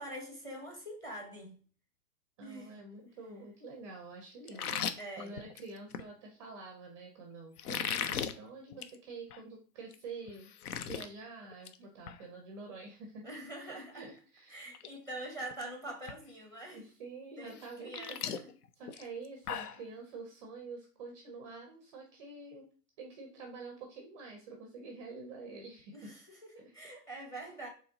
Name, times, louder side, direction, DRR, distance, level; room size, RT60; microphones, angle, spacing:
voice 1, 0.0-1.6 2.4-2.8 4.5-4.6 5.0-5.3 13.2-14.1 14.5-16.8 17.4-18.5 25.9-27.7, right 1 dB, 5° left, 0.8 m, -44 dB
voice 2, 2.4-10.5 10.9-13.2 13.6-14.7 16.7-18.4 18.8-22.7 23.0-26.1 26.6-26.7 27.3-27.4, right 3 dB, 20° right, 0.5 m, -47 dB
sound 1, 4.5-6.1 7.6-8.3 8.7-9.0 9.3-9.4 9.9-10.0 10.3-11.1 11.4-11.8 12.1-12.2 14.0-14.1 14.6-14.9 15.2-15.6 16.1-16.2 17.5-19.8, left 8 dB, 65° left, 0.6 m, -37 dB
4.3 x 3.1 x 3.7 m
hypercardioid pair, 135°, 49 cm